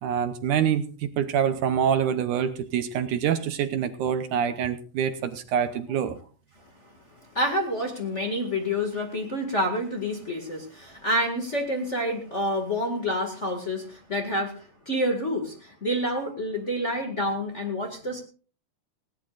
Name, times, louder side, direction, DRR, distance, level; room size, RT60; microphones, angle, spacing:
voice 1, 0.0-6.2, right 8 dB, 70° right, 10 dB, 2.2 m, -26 dB
voice 2, 7.3-18.2, equal, 25° left, 2 dB, 1.8 m, -28 dB
19.0 x 17.5 x 2.5 m, 0.38 s
omnidirectional pair, 4.0 m